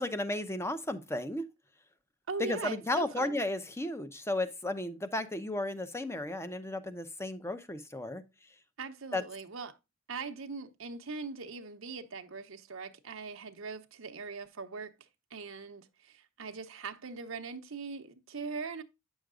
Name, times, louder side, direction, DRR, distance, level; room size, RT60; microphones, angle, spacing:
voice 1, 0.0-1.4 2.4-8.2 9.1-9.2, left 1 dB, 15° left, 0.8 m, -34 dB
voice 2, 2.3-3.4 8.8-9.8 10.1-18.8, right 4 dB, 75° right, 0.9 m, -41 dB
9.2 x 6.4 x 2.4 m
head